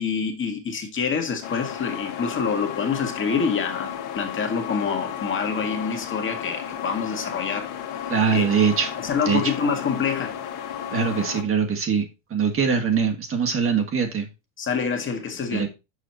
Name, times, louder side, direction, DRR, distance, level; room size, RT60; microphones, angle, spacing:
voice 1, 0.0-7.7 8.3-8.5 9.0-10.3 14.6-15.7, left 6 dB, 35° left, 1.8 m, -26 dB
sound 1, 1.4-11.4, left 9 dB, 60° left, 1.8 m, -33 dB
voice 2, 8.1-8.9 9.3-9.4 10.9-14.3 15.5-15.7, right 6 dB, 35° right, 1.8 m, -22 dB
6.5 x 5.0 x 4.2 m
supercardioid pair, 100°, 36 cm